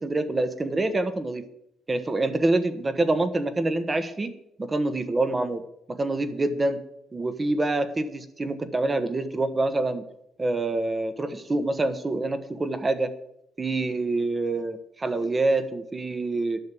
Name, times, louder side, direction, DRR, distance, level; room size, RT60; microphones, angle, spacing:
voice 1, 0.0-1.4 1.9-4.3 4.6-5.6 5.9-6.8 7.1-10.0 10.4-13.1 13.6-16.6, right 2 dB, 25° right, 9 dB, 1.4 m, -26 dB
10.5 x 6.6 x 8.7 m, 0.77 s
cardioid pair, 90°, 0 cm